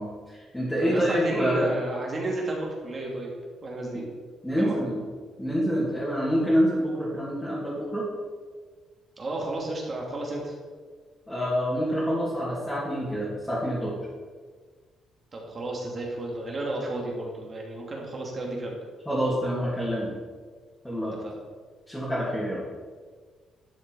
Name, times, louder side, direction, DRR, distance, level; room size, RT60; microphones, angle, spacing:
voice 1, 0.0-1.7 4.4-5.0 5.4-8.0 11.3-13.9 19.1-20.1 20.8-21.2 21.9-22.6, equal, 5° left, -8 dB, 2.6 m, -27 dB
voice 2, 0.8-3.3 3.6-4.1 4.6-4.8 9.2-10.5 15.3-18.8 21.2-21.3, right 2 dB, 30° right, -1 dB, 2.7 m, -32 dB
11.5 x 6.9 x 4.8 m, 1.5 s
cardioid pair, 135°, 0 cm